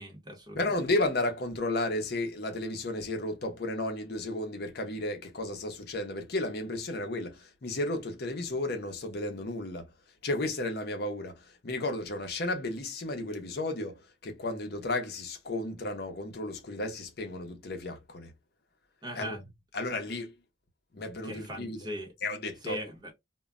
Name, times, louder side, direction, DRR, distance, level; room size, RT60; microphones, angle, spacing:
voice 1, 0.0-0.7 19.0-19.4 21.2-22.1 22.6-23.1, equal, 20° right, 0.7 m, -39 dB
voice 2, 0.5-9.9 10.2-18.3 19.2-19.4 19.7-20.3 20.9-21.9 22.2-22.8, left 2 dB, 55° left, 0.6 m, -33 dB
2.2 x 2.0 x 3.5 m
head